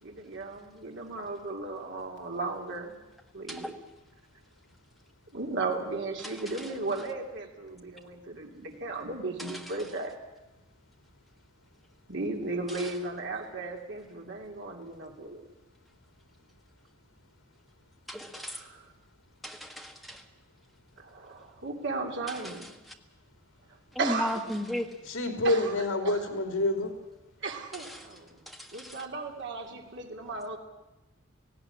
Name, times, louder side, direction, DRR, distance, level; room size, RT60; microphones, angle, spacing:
voice 1, 0.0-2.9 3.3-3.7 5.3-10.1 12.1-15.4 21.0-22.6 24.0-24.3 25.4-26.4 27.4-28.4 28.7-30.6, right 3 dB, 60° right, 1 dB, 2.9 m, -35 dB
voice 2, 6.2-6.8 9.4-9.9 12.7-13.0 18.1-18.7 19.4-20.3 22.3-22.9 23.9-25.1 27.7-28.2 28.5-29.1, equal, ahead, 3 dB, 1.7 m, -37 dB
voice 3, 25.1-26.9, left 1 dB, 85° left, 5 dB, 3.1 m, -27 dB
18.0 x 16.0 x 9.9 m, 1.1 s
head